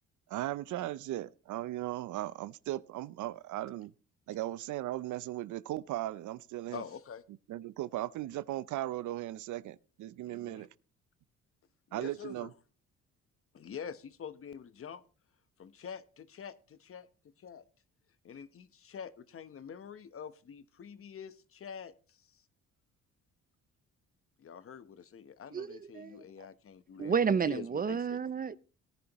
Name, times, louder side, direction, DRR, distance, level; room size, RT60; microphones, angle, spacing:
voice 1, 0.3-3.9 4.3-6.8 7.5-10.7 11.9-12.5, right 14 dB, 75° right, 0.6 m, -37 dB
voice 2, 6.7-7.2 10.2-10.7 11.9-12.5 13.5-15.0 15.6-17.1 17.4-17.6 18.2-22.4 24.4-27.2 27.5-28.2, left 7 dB, 45° left, 0.9 m, -46 dB
voice 3, 25.5-26.2 27.0-28.6, right 6 dB, 30° right, 0.5 m, -31 dB
17.5 x 10.5 x 3.0 m
cardioid pair, 90°, 30 cm